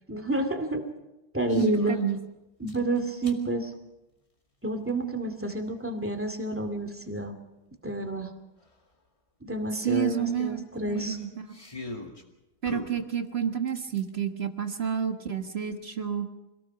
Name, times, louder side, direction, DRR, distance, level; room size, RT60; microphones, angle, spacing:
voice 1, 0.1-0.8 1.3-2.0 2.6-3.7 4.6-7.3 7.8-8.3 9.4-11.2, right 1 dB, 5° right, 5 dB, 2.1 m, -29 dB
sound 1, 1.4-2.1 2.7-3.4 4.9-5.0 7.7-7.8 8.0-8.1 8.6-8.7 10.3-12.2 12.6-14.1, left 2 dB, 15° left, 2.3 m, -42 dB
voice 2, 1.5-2.2 9.7-11.6 12.6-16.3, right 8 dB, 35° right, 6 dB, 1.4 m, -30 dB
26.5 x 18.5 x 6.0 m, 0.98 s
omnidirectional pair, 2.3 m